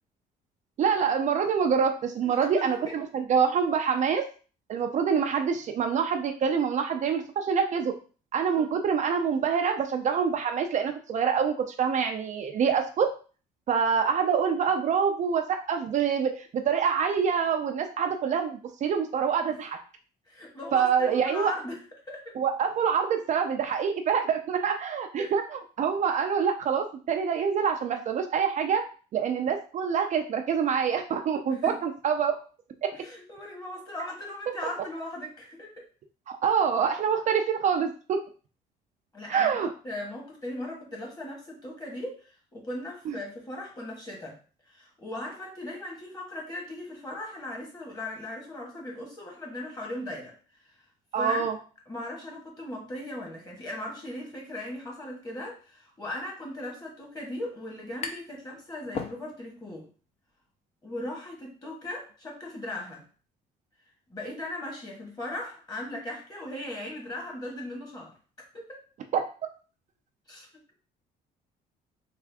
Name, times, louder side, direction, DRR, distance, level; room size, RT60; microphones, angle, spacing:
voice 1, 0.8-4.2 4.7-7.9 8.3-13.1 13.7-19.8 20.7-21.5 22.4-28.8 29.1-32.4 32.8-32.9 36.3-38.2 39.3-39.7 43.1-43.2 51.1-51.6 69.1-69.2, right 7 dB, 45° right, 5 dB, 0.4 m, -26 dB
voice 2, 2.2-2.9 8.6-8.7 20.3-21.8 22.1-22.3 25.2-25.3 31.5-31.7 32.9-35.9 39.1-39.6 39.8-44.4 44.7-50.3 51.2-51.5 51.9-59.9 60.8-63.0 64.1-68.1 68.5-68.8 70.3-70.5, left 1 dB, 20° left, -1 dB, 1.5 m, -38 dB
sound 1, 57.4-58.4 58.7-59.7, left 5 dB, 40° left, 0.6 m, -38 dB
3.4 x 2.5 x 3.5 m, 0.38 s
cardioid pair, 110°, 17 cm